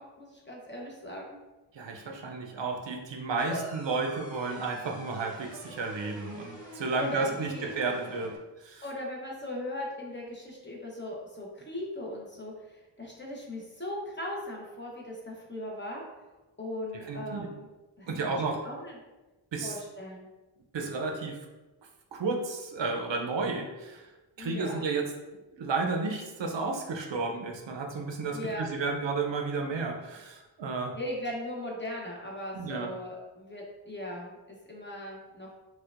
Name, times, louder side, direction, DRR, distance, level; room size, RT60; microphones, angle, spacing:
voice 1, 0.0-1.4 3.3-3.6 6.7-7.7 8.8-16.0 16.6-17.7 18.0-19.0 19.6-20.3 24.4-24.8 28.3-28.7 30.9-35.5, left 1 dB, 25° left, -2 dB, 0.8 m, -39 dB
voice 2, 1.7-8.3 8.6-8.8 17.1-17.5 18.1-18.6 19.5-19.7 20.7-21.4 22.1-24.1 24.4-25.1 25.5-30.9 32.5-32.9, right 3 dB, 70° right, 2 dB, 0.6 m, -32 dB
sound 1, 3.4-8.4, equal, 10° left, 1.2 m, -47 dB
4.3 x 2.3 x 2.4 m, 1.1 s
wide cardioid pair, 75°, 46 cm